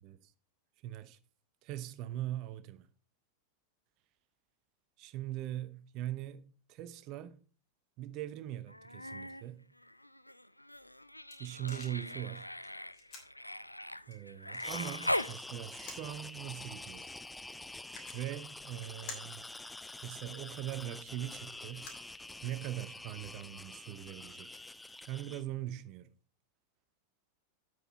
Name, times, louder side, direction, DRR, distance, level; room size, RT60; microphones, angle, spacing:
voice 1, 0.0-0.3 0.8-1.2 1.6-2.9 5.0-7.4 8.0-9.6 11.4-12.5 14.1-17.1 18.1-19.5 20.0-21.9 22.4-24.6 25.1-26.1, right 13 dB, 40° right, 0.8 m, -41 dB
Human voice, 8.7-9.4 9.8-15.4 17.0-17.1, left 1 dB, 85° left, 0.3 m, -40 dB
sound 1, 10.7-22.8, left 4 dB, 40° left, 3.2 m, -55 dB
sound 2, 14.6-25.4, left 2 dB, 5° left, 0.4 m, -47 dB
9.5 x 8.2 x 4.2 m
figure-of-eight pair, 90°, 0 cm